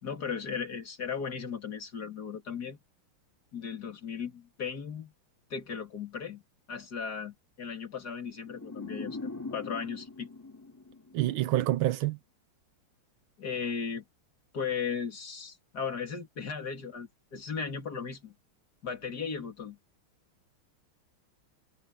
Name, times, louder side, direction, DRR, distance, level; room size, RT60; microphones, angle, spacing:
voice 1, 0.0-2.8 3.5-5.1 5.5-6.4 6.7-10.3 13.4-14.0 14.5-18.3 18.8-19.8, left 6 dB, 45° left, 3.2 m, -36 dB
sound 1, 8.5-11.6, left 3 dB, 10° left, 2.4 m, -42 dB
voice 2, 11.1-12.2, right 15 dB, 75° right, 1.5 m, -27 dB
omnidirectional pair, 2.3 m